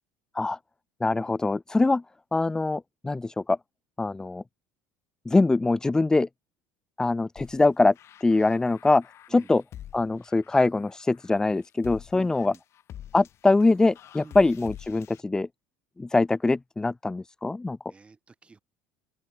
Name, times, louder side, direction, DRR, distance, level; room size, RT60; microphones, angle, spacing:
voice 1, 1.0-2.0 2.3-3.6 4.0-4.4 5.3-6.3 7.0-7.9 8.2-9.0 9.3-9.6 9.9-12.5 13.1-15.5 16.0-17.8, left 3 dB, 10° left, 0.4 m, -23 dB
sound 1, 7.4-15.2, left 11 dB, 45° left, 7.7 m, -47 dB
voice 2, 12.1-12.6 14.2-14.4 17.9-18.6, right 4 dB, 20° right, 6.1 m, -50 dB
open air
supercardioid pair, 110°, 6 cm